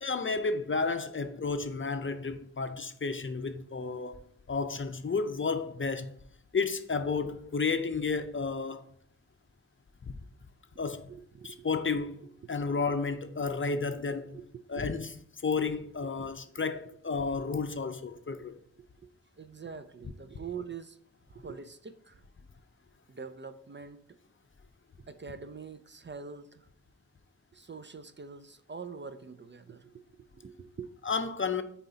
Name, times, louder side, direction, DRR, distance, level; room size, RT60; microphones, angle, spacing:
voice 1, 0.0-6.2 6.5-8.8 10.1-10.2 10.8-11.1 11.4-14.4 14.7-15.1 15.4-18.5 31.0-31.6, left 4 dB, 35° left, 0.6 m, -32 dB
voice 2, 10.7-11.7 12.4-12.8 14.3-14.8 18.8-18.9 19.4-21.0 21.3-22.2 23.1-24.0 25.0-26.7 27.5-30.0 30.3-30.9, right 5 dB, 35° right, 0.5 m, -44 dB
9.0 x 4.2 x 2.8 m
cardioid pair, 45°, 34 cm